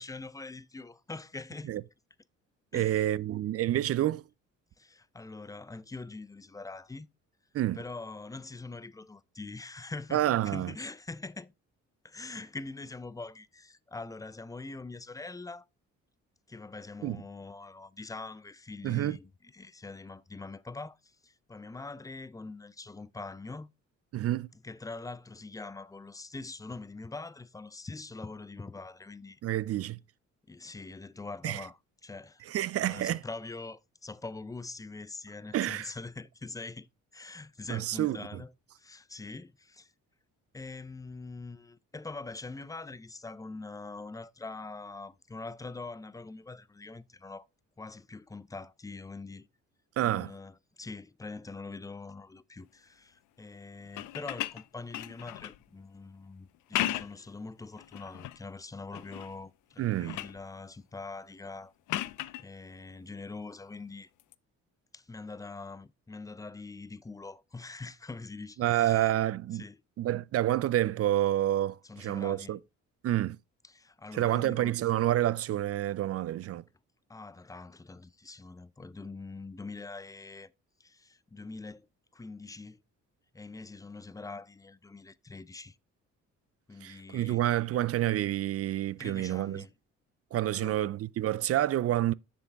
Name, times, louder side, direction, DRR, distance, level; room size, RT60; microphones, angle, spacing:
voice 1, 0.0-1.7 2.7-3.1 4.8-7.1 7.8-11.5 12.0-15.7 16.5-23.7 24.6-29.4 30.5-32.4 32.8-38.5 38.8-39.9 40.5-47.5 47.8-49.5 50.0-61.7 62.4-64.1 64.9-69.1 69.5-69.8 71.8-72.6 73.6-74.8 77.1-80.5 80.8-81.9 82.1-82.8 83.3-85.8 86.7-87.4 89.0-89.7 90.5-90.8, left 3 dB, 10° left, 0.5 m, -43 dB
voice 2, 2.7-4.2 7.5-7.8 10.1-10.7 17.0-17.2 18.8-19.2 24.1-24.5 29.4-30.0 31.4-31.6 32.5-33.2 35.5-35.9 37.7-38.4 50.0-50.3 59.8-60.2 68.6-69.6 70.0-72.6 73.0-73.4 74.1-76.6 86.8-89.6 90.3-92.1, right 13 dB, 50° right, 0.4 m, -28 dB
sound 1, 53.9-55.6 56.5-57.3 57.8-58.4 58.9-59.4 59.7-60.4 61.9-62.5 64.2-64.3, left 15 dB, 80° left, 0.5 m, -36 dB
7.0 x 7.0 x 3.5 m
cardioid pair, 90°, 30 cm